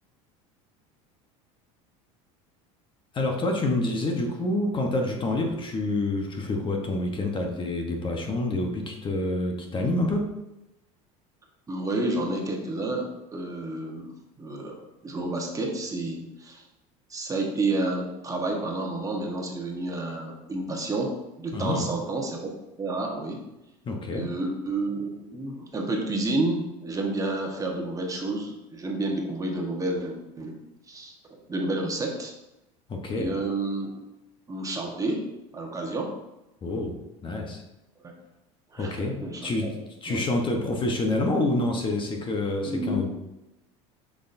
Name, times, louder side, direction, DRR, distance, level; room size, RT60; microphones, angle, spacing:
voice 1, 3.1-10.3 21.5-21.8 23.9-24.3 32.9-33.3 36.6-37.0 37.2-37.6 38.8-43.1, left 2 dB, 30° left, 2 dB, 1.0 m, -27 dB
voice 2, 11.7-16.6 17.1-22.5 22.8-23.4 24.1-30.5 30.9-31.1 31.5-32.3 33.1-33.9 34.5-35.2 35.5-36.2 38.0-38.1 38.7-39.7 40.1-40.3 42.7-43.1, right 2 dB, 20° right, 0 dB, 1.3 m, -30 dB
6.3 x 5.9 x 2.7 m, 0.94 s
supercardioid pair, 105°, 17 cm